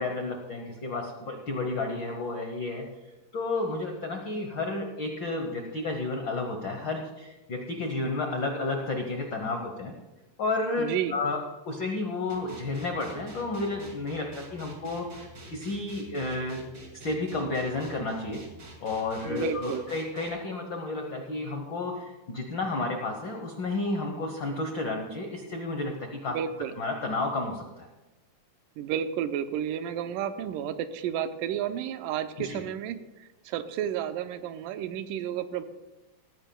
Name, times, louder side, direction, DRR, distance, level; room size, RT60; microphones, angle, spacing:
voice 1, 0.0-2.9 3.3-9.9 10.4-16.6 16.9-18.4 18.8-26.4 26.8-27.9 32.4-32.6, left 2 dB, 75° left, 3 dB, 1.0 m, -31 dB
voice 2, 10.8-11.1 19.2-19.8 26.3-26.7 28.8-35.6, right 9 dB, 85° right, 10 dB, 2.2 m, -32 dB
sound 1, 12.3-20.3, right 1 dB, 35° right, 2.5 m, -46 dB
18.0 x 14.5 x 2.3 m, 1.1 s
omnidirectional pair, 3.9 m